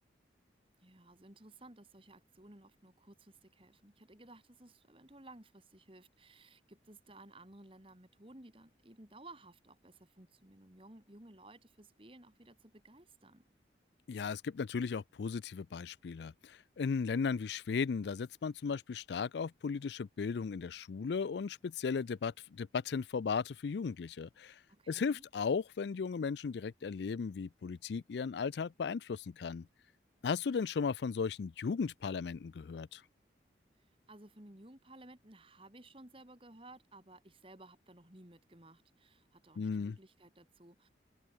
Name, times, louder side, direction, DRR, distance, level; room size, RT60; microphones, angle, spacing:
voice 1, 0.8-13.4 24.7-25.3 33.8-40.9, right 2 dB, 30° right, 2.4 m, -57 dB
voice 2, 14.1-24.6 24.9-29.7 30.2-33.0 39.6-40.0, left 5 dB, 70° left, 0.4 m, -36 dB
open air
head